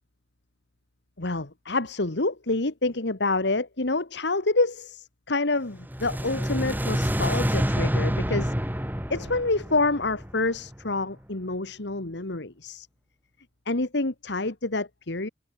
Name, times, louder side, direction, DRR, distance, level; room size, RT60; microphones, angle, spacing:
voice 1, 1.2-8.5 9.1-12.9 13.7-15.3, left 2 dB, 65° left, 1.7 m, -27 dB
sound 1, 5.8-10.9, equal, 10° right, 7.2 m, -28 dB
head